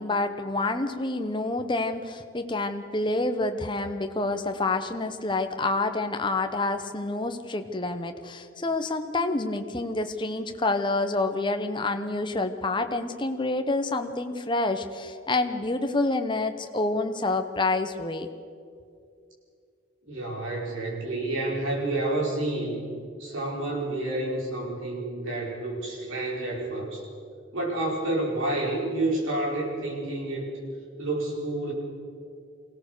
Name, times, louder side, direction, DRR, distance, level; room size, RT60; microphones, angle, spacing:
voice 1, 0.0-18.3, left 2 dB, 20° left, 7 dB, 0.9 m, -28 dB
voice 2, 20.0-22.8 23.2-27.1 27.5-30.5 31.0-31.7, right 2 dB, 70° right, -3 dB, 5.0 m, -29 dB
23.5 x 17.0 x 6.6 m, 2.4 s
head